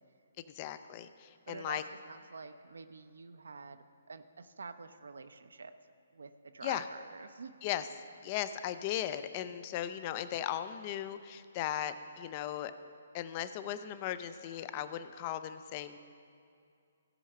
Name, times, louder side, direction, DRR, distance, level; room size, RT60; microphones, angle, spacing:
voice 1, 0.6-1.8 6.6-6.8 7.6-7.8 8.2-12.7 13.1-16.0, left 11 dB, 30° left, 12 dB, 0.4 m, -37 dB
voice 2, 1.5-3.8 4.1-5.7 6.1-7.6, right 4 dB, 65° right, 10 dB, 0.6 m, -47 dB
16.5 x 5.5 x 5.4 m, 2.5 s
figure-of-eight pair, 130°, 0 cm